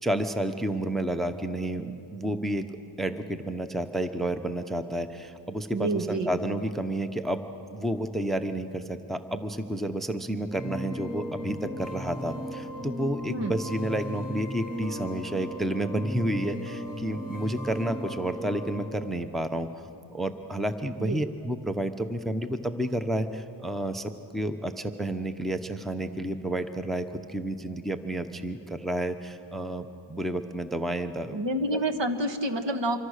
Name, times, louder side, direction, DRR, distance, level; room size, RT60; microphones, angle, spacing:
voice 1, 0.0-2.7 3.0-31.4 31.7-31.8, right 1 dB, ahead, 8 dB, 0.9 m, -30 dB
voice 2, 5.7-6.4 13.3-13.5 21.0-21.2 31.3-33.0, right 1 dB, 60° right, 6 dB, 1.8 m, -28 dB
sound 1, 10.5-18.9, equal, 30° right, 3.3 m, -36 dB
26.0 x 24.0 x 6.6 m, 2.8 s
wide cardioid pair, 90°, 50 cm